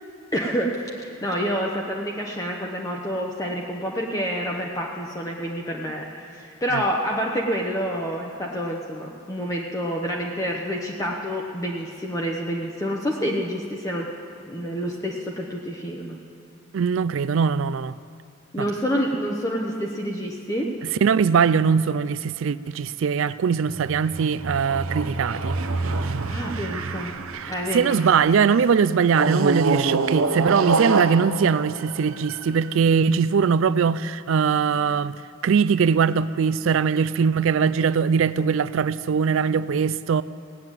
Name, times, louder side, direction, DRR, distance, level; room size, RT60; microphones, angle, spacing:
voice 1, 0.3-14.1 14.5-16.2 18.5-20.7 26.3-27.1 27.5-28.1, equal, 15° left, 0.9 m, -28 dB
voice 2, 16.7-17.9 18.6-18.7 21.0-25.6 26.0-26.1 27.3-40.2, right 6 dB, 65° right, 0.4 m, -21 dB
sound 1, 23.7-28.3 29.1-32.7, right 3 dB, 85° right, 0.8 m, -26 dB
17.5 x 7.8 x 9.0 m
head